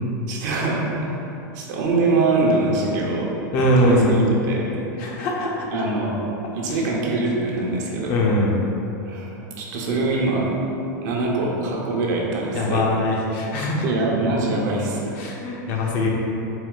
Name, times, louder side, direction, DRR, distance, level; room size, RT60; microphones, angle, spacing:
voice 1, 0.3-1.1 1.5-3.3 3.8-4.7 5.7-6.1 6.5-8.1 9.1-9.3 9.6-10.5 11.0-12.8 13.6-15.0, right 2 dB, 65° right, -2 dB, 0.8 m, -23 dB
voice 2, 3.5-4.3 5.0-5.7 6.7-6.8 8.1-8.6 12.5-13.9 15.1-16.1, left 1 dB, 50° left, -2 dB, 0.7 m, -21 dB
4.1 x 2.2 x 3.8 m, 2.9 s
hypercardioid pair, 105°, 11 cm